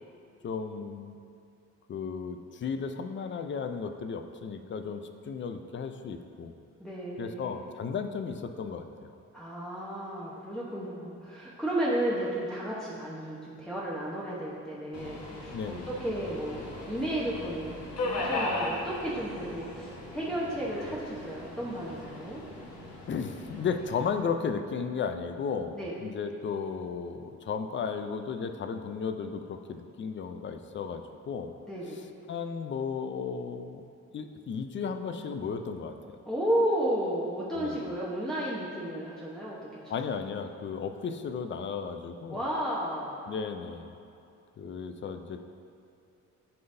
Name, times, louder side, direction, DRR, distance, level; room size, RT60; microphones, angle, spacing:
voice 1, 0.4-1.2 1.9-6.5 7.2-9.1 15.5-15.9 23.1-31.5 32.3-33.8 34.1-35.9 37.5-37.9 39.9-42.4 43.3-43.9 44.6-45.4, left 6 dB, 40° left, 7 dB, 0.5 m, -34 dB
voice 2, 6.8-7.6 9.3-22.4 25.7-25.9 31.7-32.0 36.2-39.9 42.3-43.3, right 1 dB, ahead, -8 dB, 0.9 m, -33 dB
Subway metro underground, 14.9-24.1, left 2 dB, 60° left, 1.3 m, -38 dB
11.5 x 3.9 x 2.7 m, 2.6 s
cardioid pair, 90°, 30 cm